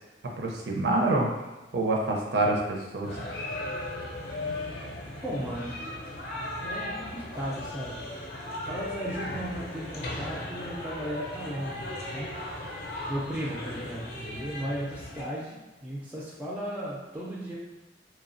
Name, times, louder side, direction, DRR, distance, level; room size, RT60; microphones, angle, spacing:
voice 1, 0.4-1.3 1.7-3.2, right 2 dB, 70° right, 0 dB, 0.5 m, -26 dB
sound 1, 3.0-15.2, left 1 dB, 60° left, 0.5 m, -37 dB
voice 2, 5.2-5.9 6.6-8.1 8.6-12.7 13.1-17.6, equal, 10° right, -6 dB, 0.3 m, -36 dB
3.0 x 2.0 x 2.5 m, 1.2 s
head